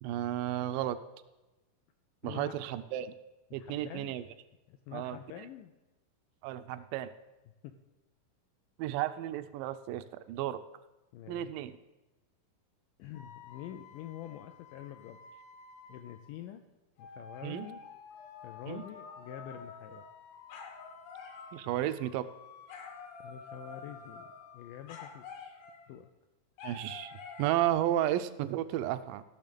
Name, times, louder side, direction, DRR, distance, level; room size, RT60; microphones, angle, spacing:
voice 1, 0.0-1.0 2.2-3.2 3.5-4.2 4.9-5.5 6.4-7.1 8.8-10.6 11.3-11.8 17.4-17.7 18.7-18.8 21.5-22.3 26.6-29.2, right 12 dB, 80° right, 12 dB, 2.1 m, -33 dB
voice 2, 2.2-2.5 3.5-4.2 4.7-5.7 7.6-7.7 11.1-11.5 13.0-15.2 15.9-16.6 17.0-17.8 18.4-20.0 23.2-24.3 24.5-25.2 25.9-26.1, left 11 dB, 80° left, 7 dB, 1.9 m, -46 dB
sound 1, 13.1-16.3 17.0-26.0 26.6-27.7, left 5 dB, 60° left, 1.8 m, -49 dB
15.0 x 6.3 x 5.2 m, 1.1 s
omnidirectional pair, 4.2 m